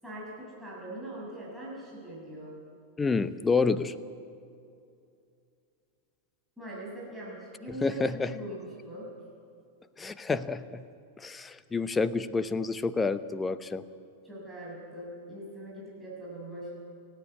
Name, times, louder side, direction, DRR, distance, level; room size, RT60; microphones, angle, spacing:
voice 1, 0.0-2.6 6.6-9.1 14.2-16.8, right 1 dB, 5° right, -6 dB, 6.9 m, -42 dB
voice 2, 3.0-3.9 7.8-8.3 10.0-10.8 11.2-13.8, left 4 dB, 15° left, 14 dB, 0.8 m, -28 dB
29.0 x 9.9 x 9.4 m, 2.5 s
figure-of-eight pair, 90°, 0 cm